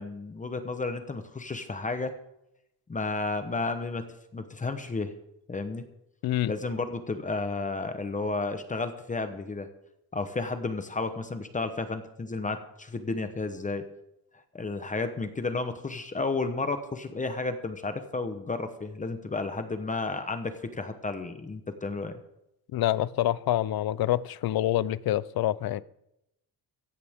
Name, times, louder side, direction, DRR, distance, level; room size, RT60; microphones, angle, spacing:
voice 1, 0.0-2.1 2.9-4.0 4.3-5.1 5.5-5.8 6.5-9.7 10.1-13.8 14.5-22.2, left 3 dB, 20° left, 8 dB, 1.0 m, -32 dB
voice 2, 22.7-25.8, left 13 dB, 70° left, 19 dB, 0.6 m, -26 dB
16.5 x 15.0 x 3.6 m, 0.83 s
wide cardioid pair, 180°, 38 cm